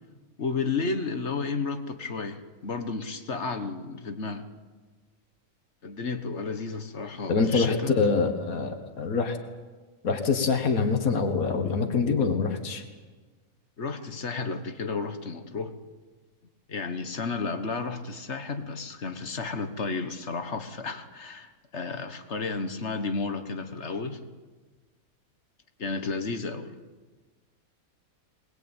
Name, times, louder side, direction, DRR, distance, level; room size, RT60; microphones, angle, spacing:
voice 1, 0.4-4.5 5.8-8.0 13.8-15.7 16.7-24.2 25.8-26.8, left 4 dB, 50° left, 8 dB, 1.6 m, -32 dB
voice 2, 7.3-9.4 10.0-12.8, left 4 dB, 75° left, 5 dB, 2.1 m, -25 dB
22.0 x 20.0 x 9.0 m, 1.4 s
omnidirectional pair, 1.5 m